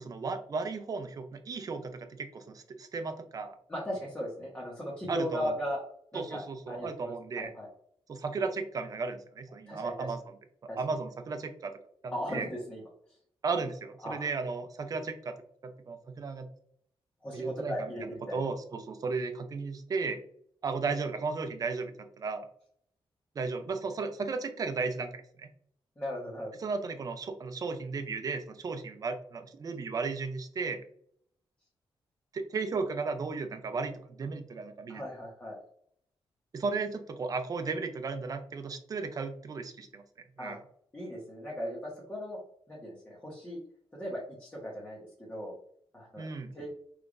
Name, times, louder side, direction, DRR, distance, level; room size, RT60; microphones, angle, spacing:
voice 1, 0.0-3.6 5.1-5.5 6.1-7.5 8.1-10.2 10.8-12.5 13.4-15.4 15.6-16.5 17.3-20.2 20.6-22.5 23.3-25.5 26.6-30.8 32.3-35.0 36.5-40.0 40.4-40.6 46.2-46.5, right 4 dB, 40° right, 7 dB, 0.6 m, -35 dB
voice 2, 3.7-5.8 6.1-6.4 6.7-7.7 9.7-10.1 10.7-10.8 12.1-12.8 14.0-14.3 17.2-18.4 26.0-26.5 34.9-35.6 40.4-40.6 40.9-42.4 42.7-43.6 43.9-45.5 45.9-46.7, equal, 15° left, -5 dB, 1.3 m, -37 dB
5.7 x 3.4 x 2.5 m, 0.64 s
wide cardioid pair, 165°, 10 cm